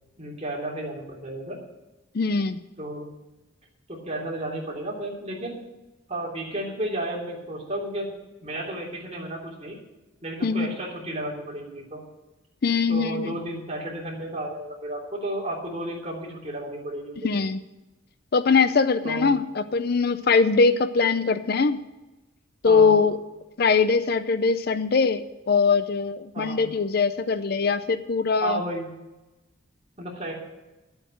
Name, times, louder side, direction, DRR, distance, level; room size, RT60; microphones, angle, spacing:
voice 1, 0.2-1.6 2.8-3.1 3.9-5.6 6.1-8.1 8.4-9.8 10.2-12.0 12.9-17.1 19.0-19.3 22.6-23.0 26.3-26.7 28.4-28.9 30.0-30.3, right 1 dB, 30° right, -2 dB, 3.2 m, -32 dB
voice 2, 2.1-2.6 10.4-10.7 12.6-13.4 17.2-17.6 18.3-21.8 22.6-23.2 23.6-28.6, left 4 dB, 50° left, 13 dB, 0.5 m, -22 dB
11.5 x 7.9 x 7.7 m, 1.1 s
head